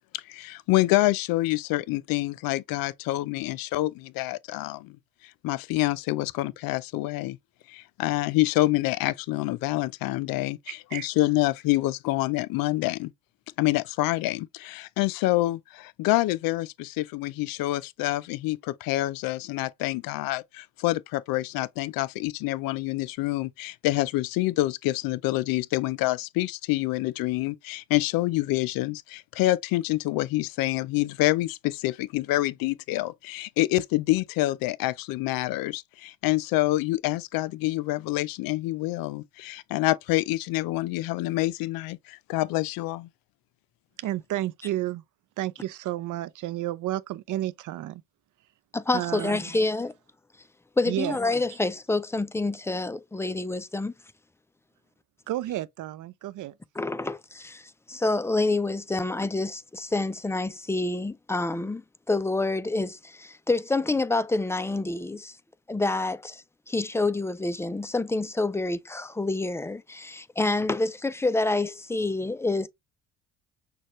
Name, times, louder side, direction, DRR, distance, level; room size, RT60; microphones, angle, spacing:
voice 1, 0.1-5.0 5.4-7.4 7.7-13.1 13.6-43.1, left 18 dB, 65° left, 0.5 m, -27 dB
voice 2, 44.0-45.0 45.4-48.0 48.9-49.4 50.8-51.2 55.3-56.5, right 14 dB, 55° right, 0.5 m, -31 dB
voice 3, 48.7-49.9 50.8-53.9 56.8-65.4 65.7-72.7, left 2 dB, 5° left, 0.4 m, -27 dB
6.3 x 2.3 x 3.0 m
hypercardioid pair, 60°, 37 cm